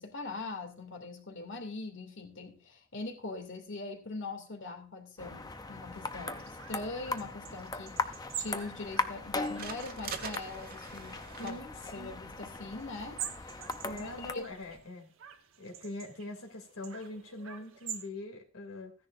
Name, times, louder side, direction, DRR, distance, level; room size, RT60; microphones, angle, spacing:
voice 1, 0.0-11.6 11.9-13.2 13.9-14.5, left 3 dB, 55° left, 4 dB, 2.5 m, -42 dB
sound 1, 5.2-14.3, left 3 dB, 20° left, 0.6 m, -39 dB
sound 2, 5.2-18.1, right 9 dB, 65° right, 1.2 m, -47 dB
sound 3, 8.0-14.8, right 6 dB, 45° right, 1.3 m, -48 dB
voice 2, 11.4-12.2 13.8-15.1 15.6-18.9, left 2 dB, 80° left, 1 dB, 2.6 m, -43 dB
15.0 x 10.0 x 2.5 m, 0.36 s
head